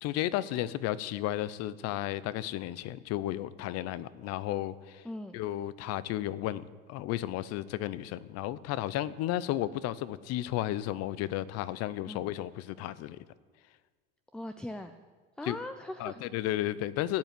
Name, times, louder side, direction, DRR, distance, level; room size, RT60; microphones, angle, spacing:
voice 1, 0.0-5.0 5.3-13.2 15.4-15.6 16.0-17.2, left 14 dB, 55° left, 18 dB, 0.7 m, -33 dB
voice 2, 5.0-5.4 12.0-12.3 14.3-14.9 15.4-16.2, left 1 dB, 5° left, 9 dB, 0.5 m, -40 dB
15.0 x 5.7 x 9.1 m, 1.5 s
supercardioid pair, 110°, 30 cm